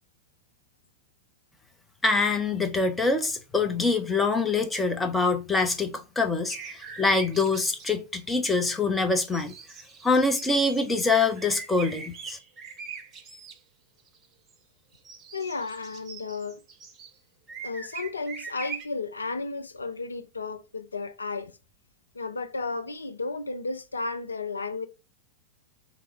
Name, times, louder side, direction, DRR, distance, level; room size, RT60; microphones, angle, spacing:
voice 1, 2.0-9.5 10.0-12.4, left 3 dB, 10° left, 0.7 m, -25 dB
sound 1, 6.5-7.9 9.2-13.6 14.1-14.5 14.9-17.1 17.5-18.8, right 5 dB, 30° right, 0.8 m, -42 dB
voice 2, 15.3-16.6 17.6-21.6 22.1-24.9, left 3 dB, 75° left, 0.5 m, -33 dB
3.6 x 3.0 x 4.3 m
figure-of-eight pair, 90°, 0 cm